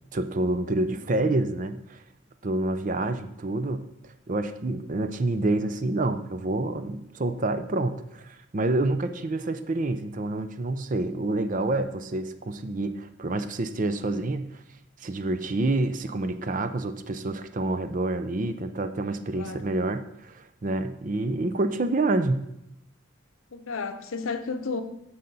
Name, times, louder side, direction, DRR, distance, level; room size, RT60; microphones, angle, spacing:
voice 1, 0.1-2.0 2.4-3.9 4.3-14.5 15.0-22.5, right 2 dB, 40° right, 10 dB, 0.5 m, -28 dB
voice 2, 19.0-19.7 23.5-24.8, left 4 dB, 85° left, 9 dB, 0.8 m, -33 dB
14.0 x 5.6 x 4.0 m, 0.82 s
head